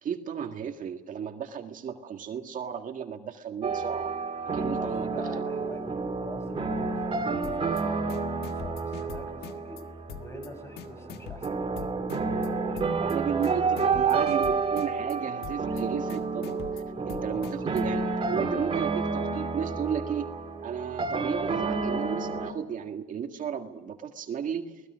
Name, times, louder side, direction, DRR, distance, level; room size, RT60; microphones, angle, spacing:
voice 1, 0.0-4.1 4.5-5.4 13.0-20.3 20.6-24.7, right 7 dB, 50° right, 5 dB, 1.8 m, -34 dB
sound 1, 3.6-22.5, right 4 dB, 30° right, 3.1 m, -30 dB
voice 2, 4.5-12.2 13.0-13.2 13.7-14.0 17.3-17.5, left 1 dB, 15° left, 7 dB, 5.3 m, -45 dB
sound 2, 7.4-7.8 8.1-9.8 10.1-10.5 10.8-12.5 12.8-13.2 13.4-15.2 15.4-15.8 16.1-17.8, left 9 dB, 70° left, 1.5 m, -43 dB
29.5 x 19.0 x 6.4 m, 1.2 s
cardioid pair, 110°, 17 cm